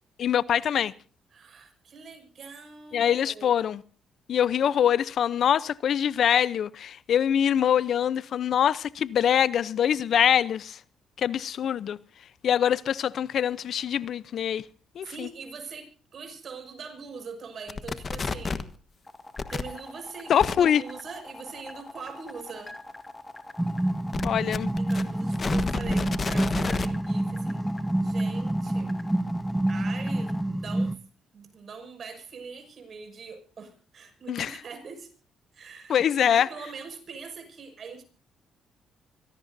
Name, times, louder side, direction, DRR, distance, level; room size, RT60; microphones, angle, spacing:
voice 1, 0.2-0.9 2.9-3.8 4.3-10.8 11.2-12.0 12.4-14.6 15.0-15.3 20.3-20.8 24.2-24.7 34.3-34.5 35.9-36.5, left 9 dB, 65° left, 0.7 m, -24 dB
voice 2, 1.3-3.5 15.0-18.6 19.5-22.7 24.8-27.7 28.0-28.9 29.7-31.0 31.3-35.1 35.5-38.0, right 5 dB, 50° right, 6.5 m, -42 dB
sound 1, 17.7-18.7 19.4-19.6 20.4-20.5 24.1-26.9, left 4 dB, 35° left, 1.4 m, -30 dB
sound 2, 19.1-30.4, left 2 dB, 15° left, 2.4 m, -43 dB
sound 3, 23.6-31.0, right 1 dB, 10° right, 0.9 m, -28 dB
25.0 x 17.5 x 2.7 m
cardioid pair, 90°, 0 cm